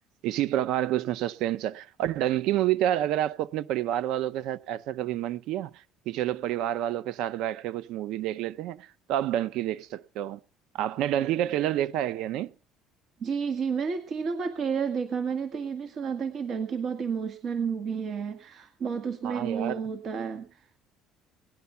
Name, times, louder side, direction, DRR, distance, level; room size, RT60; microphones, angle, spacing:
voice 1, 0.2-10.4 10.7-12.5 19.2-19.8, right 12 dB, 70° right, 0.7 m, -29 dB
voice 2, 13.2-20.8, right 6 dB, 45° right, 1.7 m, -31 dB
18.5 x 10.5 x 5.7 m
cardioid pair, 125°, 0 cm